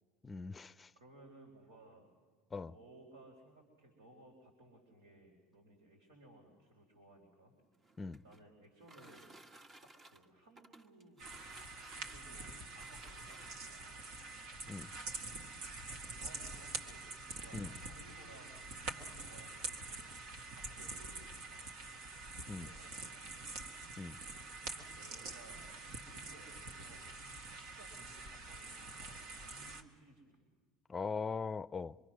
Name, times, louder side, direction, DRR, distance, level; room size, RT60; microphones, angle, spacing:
voice 1, 0.2-0.9 2.5-2.7 8.0-8.2 14.7-14.9 17.5-17.7 22.5-22.7 24.0-24.2 30.9-31.9, left 4 dB, 25° left, 0.6 m, -40 dB
voice 2, 1.0-2.1 2.7-7.5 8.2-9.4 9.8-11.3 11.7-14.3 15.9-22.1 22.4-23.5 24.6-25.8 26.1-27.3 27.7-30.5, right 2 dB, 85° right, 3.8 m, -60 dB
sound 1, 7.6-13.9 14.7-14.8 15.2-15.3 15.6-16.0, right 1 dB, 35° right, 1.7 m, -60 dB
sound 2, 11.2-29.8, right 3 dB, 65° right, 1.9 m, -46 dB
25.5 x 23.5 x 6.2 m
hypercardioid pair, 75°, 0 cm